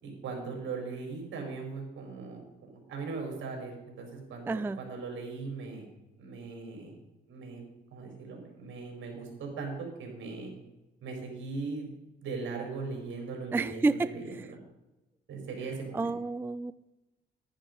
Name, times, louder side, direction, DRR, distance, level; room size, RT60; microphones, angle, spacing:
voice 1, 0.0-2.4 2.7-5.8 6.2-7.0 7.3-7.6 7.9-10.5 11.0-11.9 12.2-14.6 15.3-16.1, right 4 dB, 70° right, 1 dB, 4.4 m, -39 dB
voice 2, 4.5-4.8 13.5-14.5 15.9-16.7, right 3 dB, 10° right, 15 dB, 0.3 m, -30 dB
11.0 x 10.0 x 5.2 m, 0.98 s
cardioid pair, 90°, 20 cm